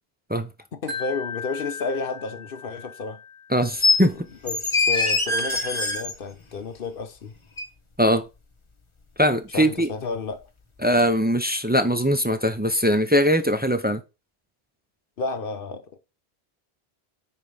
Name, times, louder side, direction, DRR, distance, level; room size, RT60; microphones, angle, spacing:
voice 1, 0.7-3.2 4.4-7.3 9.5-10.5 15.2-16.0, left 4 dB, 60° left, 1.0 m, -31 dB
Wind chime, 0.9-4.0, left 5 dB, 50° right, 1.4 m, -37 dB
voice 2, 3.5-4.2 8.0-8.2 9.2-9.9 10.8-14.0, equal, 15° right, 0.4 m, -21 dB
sound 1, 3.8-4.0 4.5-6.1 7.6-7.7, left 3 dB, 30° left, 1.0 m, -22 dB
5.2 x 4.6 x 5.4 m
omnidirectional pair, 1.1 m